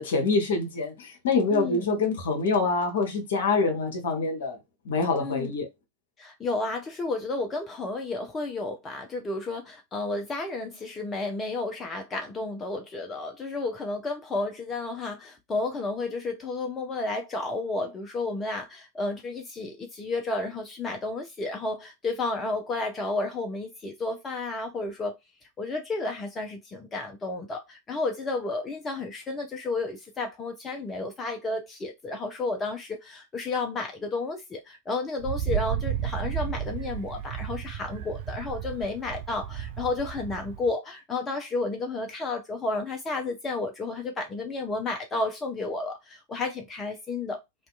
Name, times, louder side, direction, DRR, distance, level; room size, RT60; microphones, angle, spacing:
voice 1, 0.0-4.6 4.8-5.7, left 3 dB, 60° left, 0.9 m, -25 dB
voice 2, 1.5-1.9 5.2-5.5 6.2-25.1 25.6-47.4, left 3 dB, 20° left, 0.5 m, -32 dB
Wind, 35.2-40.7, right 10 dB, 50° right, 0.3 m, -33 dB
2.7 x 2.3 x 2.4 m
figure-of-eight pair, 90°, 0 cm